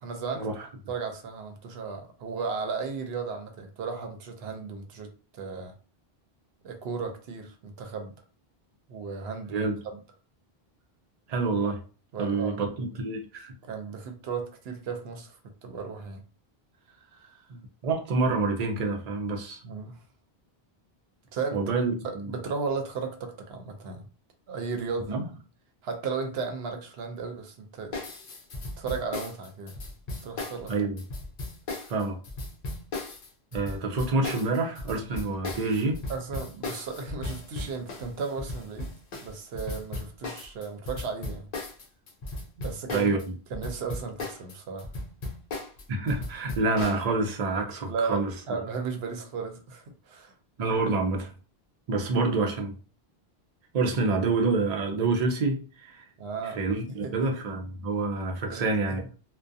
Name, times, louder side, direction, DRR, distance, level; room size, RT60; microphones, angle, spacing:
voice 1, 0.0-0.5 0.9-5.7 6.6-8.2 8.9-9.7 9.9-10.0 12.1-12.6 13.6-16.2 16.9-17.5 19.6-20.0 21.3-21.6 22.0-24.1 24.5-25.2 25.8-28.0 28.8-29.8 30.2-30.7 36.1-38.9 39.2-41.5 42.6-43.2 43.5-44.9 47.9-48.2 48.5-50.3 56.2-56.6 56.9-57.1 57.5-57.6 58.5-59.0, right 5 dB, 80° right, 0.8 m, -35 dB
voice 2, 11.3-11.8 12.2-13.5 17.5-19.6 21.5-22.3 25.1-25.2 30.7-31.0 31.9-32.2 33.5-36.0 42.9-43.2 45.9-48.3 50.6-51.3 51.9-52.7 53.7-56.0 56.4-59.0, right 3 dB, 50° right, 0.6 m, -27 dB
sound 1, 27.9-43.3 43.5-47.0, left 2 dB, 50° left, 0.5 m, -36 dB
2.3 x 2.2 x 2.5 m
omnidirectional pair, 1.0 m